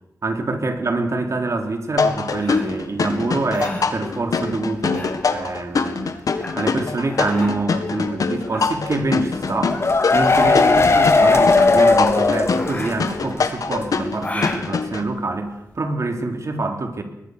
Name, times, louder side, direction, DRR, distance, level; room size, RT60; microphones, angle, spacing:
voice 1, 0.2-6.2 6.5-9.8 10.1-17.0, right 2 dB, 60° right, 5 dB, 3.4 m, -25 dB
sound 1, 2.0-15.0, left 4 dB, 90° left, 1.9 m, -24 dB
sound 2, 2.3-15.8, left 2 dB, 25° left, 6.7 m, -35 dB
sound 3, 9.5-13.1 13.4-13.5 13.8-13.9, left 3 dB, 50° left, 2.2 m, -17 dB
21.5 x 21.0 x 6.7 m, 0.88 s
wide cardioid pair, 75°, 6 cm